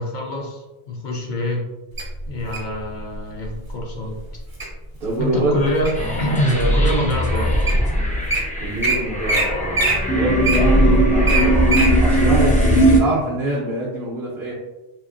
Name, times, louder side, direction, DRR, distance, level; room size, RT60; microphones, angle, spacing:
voice 1, 0.0-1.7 2.3-4.2 5.2-7.5 10.8-11.0, equal, 55° left, -1 dB, 0.6 m, -25 dB
Wild animals, 2.0-2.7 3.4-3.7 4.2-4.7 5.2-6.1 6.7-6.8 7.4-7.5 7.7-7.8 8.1-8.4 8.8-9.0 9.3-9.4 9.7-11.9 12.4-12.5, right 3 dB, 25° right, 0.6 m, -22 dB
voice 2, 5.0-5.5 6.5-6.7 8.6-11.6 12.0-14.5, right 1 dB, 65° right, -4 dB, 0.8 m, -25 dB
sound 1, 6.0-13.0, equal, 15° left, 0.3 m, -18 dB
3.2 x 2.9 x 2.4 m, 1.1 s
omnidirectional pair, 1.1 m